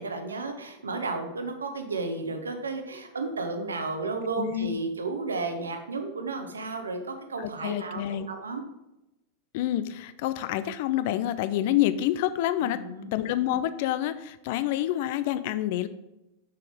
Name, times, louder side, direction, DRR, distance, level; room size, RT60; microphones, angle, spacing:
voice 1, 0.0-8.6 12.6-13.1, right 3 dB, 75° right, 6 dB, 0.9 m, -33 dB
voice 2, 4.4-4.8 7.4-8.3 9.5-12.8 13.1-15.9, left 13 dB, 50° left, 12 dB, 0.5 m, -27 dB
6.4 x 6.3 x 3.6 m, 0.92 s
figure-of-eight pair, 90°, 0 cm